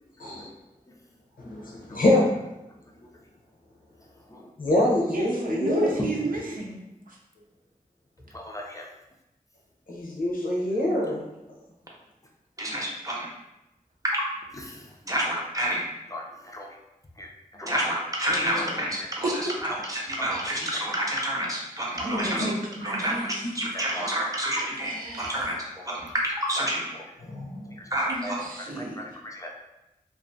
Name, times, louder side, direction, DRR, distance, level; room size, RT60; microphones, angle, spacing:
voice 1, 1.4-2.3 4.6-6.0 9.9-11.3 18.3-18.7 22.0-22.5 22.9-23.0 23.4-23.5 27.2-27.7, left 1 dB, 75° left, -2 dB, 0.6 m, -25 dB
voice 2, 5.1-6.8 7.1-7.2 10.5-10.6 19.2-19.3 22.0-23.5 24.8-25.5 28.1-29.0, right 3 dB, 75° right, -2 dB, 0.6 m, -33 dB
voice 3, 8.3-8.9 14.7-14.9 16.1-16.8 17.2-17.3 17.6-17.8 18.6-18.7 20.2-20.4 20.8-20.9 22.2-22.3 23.7-24.1 24.6-24.7 25.9-26.0 28.0-28.4 28.8-29.5, left 1 dB, 25° left, -1 dB, 0.4 m, -37 dB
voice 4, 12.6-13.3 14.1-14.3 15.1-15.8 17.6-19.3 19.9-22.5 22.8-25.5 25.9-26.9 27.9-28.4, right 1 dB, 25° right, -4 dB, 0.7 m, -28 dB
2.4 x 2.3 x 2.5 m, 0.93 s
wide cardioid pair, 45°, 15 cm